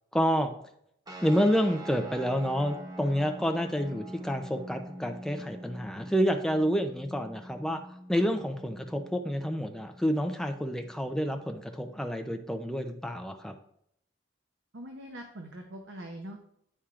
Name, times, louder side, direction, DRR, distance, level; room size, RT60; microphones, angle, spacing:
voice 1, 0.1-0.5 1.2-13.6, equal, 5° left, 5 dB, 0.4 m, -29 dB
sound 1, 1.1-12.0, right 1 dB, 20° right, 0.8 m, -45 dB
voice 2, 14.7-16.4, right 1 dB, 65° right, 2 dB, 0.7 m, -42 dB
10.0 x 4.4 x 2.4 m, 0.72 s
head